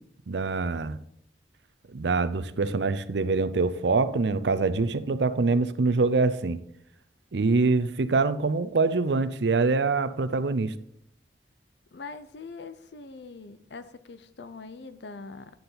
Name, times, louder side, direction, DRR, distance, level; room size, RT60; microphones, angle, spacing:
voice 1, 0.3-1.0 1.9-6.6 7.3-10.7, right 3 dB, 80° right, 13 dB, 0.6 m, -24 dB
voice 2, 11.9-15.5, left 4 dB, 80° left, 12 dB, 0.7 m, -42 dB
9.5 x 6.9 x 3.9 m, 0.70 s
head